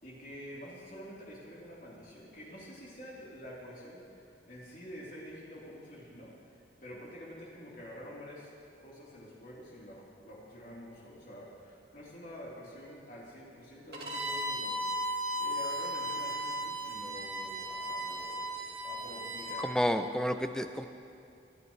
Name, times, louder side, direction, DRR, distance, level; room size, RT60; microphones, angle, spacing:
voice 1, 0.0-8.5 8.8-19.8, equal, 50° left, -7 dB, 3.6 m, -48 dB
Bowed string instrument, 13.9-19.6, equal, 60° right, 2.4 m, -36 dB
voice 2, 19.6-20.9, equal, 5° left, 7 dB, 0.5 m, -30 dB
24.5 x 11.0 x 3.2 m, 2.5 s
head